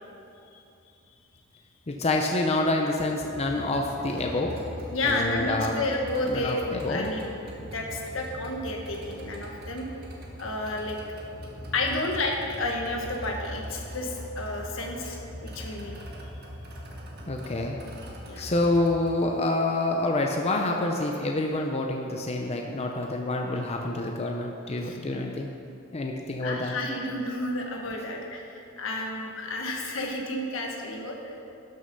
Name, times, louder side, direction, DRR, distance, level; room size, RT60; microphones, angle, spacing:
voice 1, 1.9-4.6 5.0-5.8 6.2-7.1 17.3-17.8 18.4-25.5 25.9-26.8, left 2 dB, 30° left, 2 dB, 0.6 m, -27 dB
sound 1, 3.2-19.3, equal, 55° right, 1.5 m, -41 dB
voice 2, 4.9-9.9 10.4-11.0 11.7-15.9 18.3-18.5 24.9-25.0 26.4-31.2, left 2 dB, 75° left, 0 dB, 1.5 m, -31 dB
12.5 x 6.5 x 5.4 m, 2.7 s
head